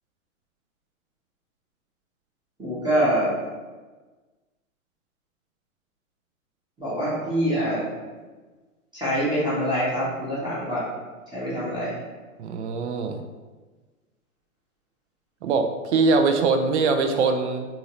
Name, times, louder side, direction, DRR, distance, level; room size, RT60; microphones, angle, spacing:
voice 1, 2.6-3.3 6.8-7.9 8.9-10.9 11.3-12.0, equal, 10° right, -9 dB, 0.9 m, -25 dB
voice 2, 12.4-13.2 15.4-17.7, right 4 dB, 55° right, 6 dB, 0.5 m, -22 dB
3.6 x 2.8 x 2.9 m, 1.3 s
hypercardioid pair, 110°, 42 cm